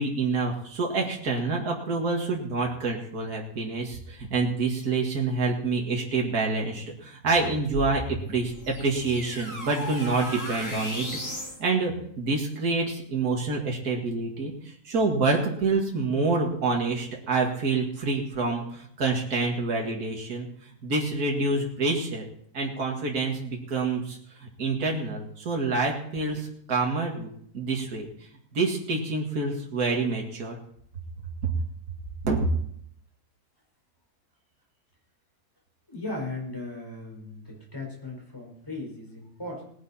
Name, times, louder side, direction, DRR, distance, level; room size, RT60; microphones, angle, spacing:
voice 1, 0.0-8.0 8.3-11.1 11.6-22.3 22.5-28.1 28.5-30.6 31.4-31.5 32.2-32.5, right 3 dB, 70° right, 0 dB, 2.5 m, -27 dB
sound 1, 7.7-11.6, left 1 dB, 70° left, 5.8 m, -36 dB
voice 2, 35.9-39.6, left 2 dB, 15° left, -1 dB, 4.7 m, -37 dB
18.5 x 11.0 x 4.3 m, 0.64 s
omnidirectional pair, 1.6 m